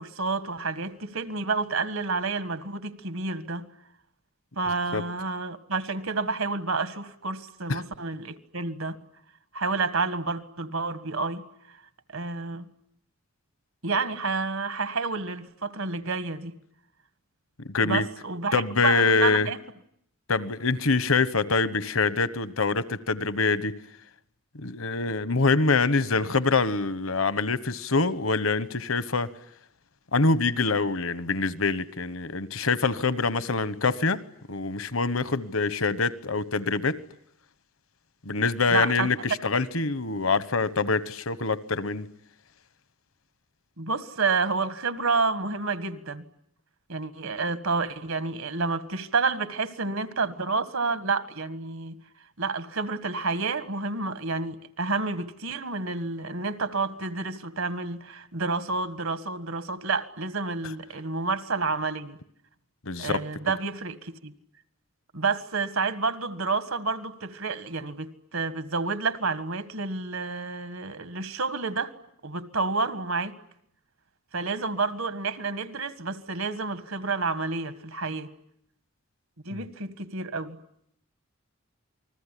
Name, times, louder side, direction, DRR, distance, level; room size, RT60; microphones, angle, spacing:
voice 1, 0.0-3.7 4.5-9.0 9.5-11.4 12.1-12.6 13.8-16.6 17.8-19.6 38.7-39.1 43.8-46.2 46.9-52.0 52.4-62.2 63.0-64.3 65.1-71.9 72.2-73.3 74.3-78.3 79.4-80.6, right 4 dB, 75° right, 1.7 m, -29 dB
voice 2, 17.7-18.1 18.5-19.5 20.3-23.8 24.5-29.3 30.1-34.2 34.5-37.0 38.2-42.1 62.9-63.2 79.5-79.6, left 4 dB, 70° left, 1.1 m, -25 dB
28.5 x 20.5 x 10.0 m
head